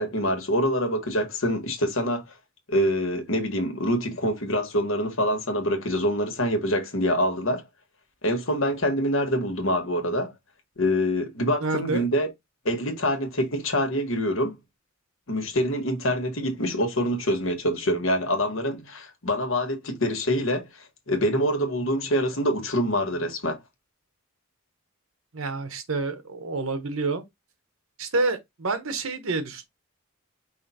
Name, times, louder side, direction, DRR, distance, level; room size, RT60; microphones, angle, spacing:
voice 1, 0.0-2.2 2.7-7.6 8.2-10.3 10.8-12.3 12.6-14.6 15.3-20.6 21.1-23.6, equal, 70° left, 1.4 m, -25 dB
voice 2, 11.6-12.1 25.3-27.2 28.0-29.6, right 3 dB, 75° right, 1.0 m, -28 dB
5.5 x 2.2 x 4.1 m
head